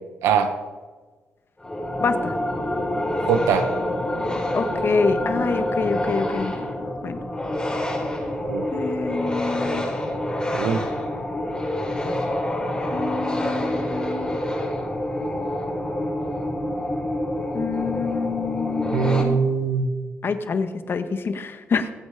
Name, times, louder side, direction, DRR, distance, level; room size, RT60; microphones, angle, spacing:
voice 1, 0.2-0.5 3.3-3.7 8.4-8.7 10.5-10.8 18.9-19.9, right 6 dB, 90° right, 8 dB, 1.2 m, -21 dB
sound 1, 1.6-19.2, left 1 dB, 20° left, 5.2 m, -27 dB
voice 2, 2.0-2.3 4.5-6.5 7.0-7.2 8.7-9.9 12.9-14.4 17.5-19.4 20.2-21.9, left 4 dB, 55° left, 9 dB, 1.6 m, -26 dB
23.0 x 8.2 x 5.1 m, 1.3 s
supercardioid pair, 60°, 5 cm